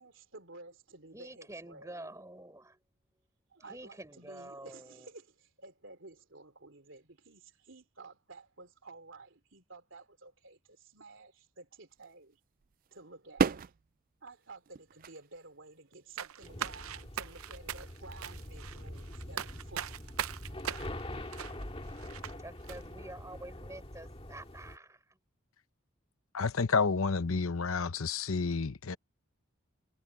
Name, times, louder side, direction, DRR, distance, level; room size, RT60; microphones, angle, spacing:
voice 1, 0.0-2.1 3.5-12.4 12.9-13.6 14.2-20.2, right 3 dB, 60° right, 3.2 m, -53 dB
voice 2, 1.1-2.8 3.7-5.1 22.3-25.2, right 1 dB, 15° right, 4.4 m, -48 dB
sound 1, 12.0-12.1 12.6-13.0 13.4-13.8 14.7-15.4 16.1-16.3 16.7-16.9, right 5 dB, 40° right, 0.3 m, -32 dB
sound 2, 16.2-22.3 22.7-22.8, right 9 dB, 80° right, 0.6 m, -40 dB
sound 3, 16.4-24.8, left 1 dB, 25° left, 2.0 m, -44 dB
voice 3, 26.3-29.0, left 4 dB, 75° left, 0.8 m, -30 dB
head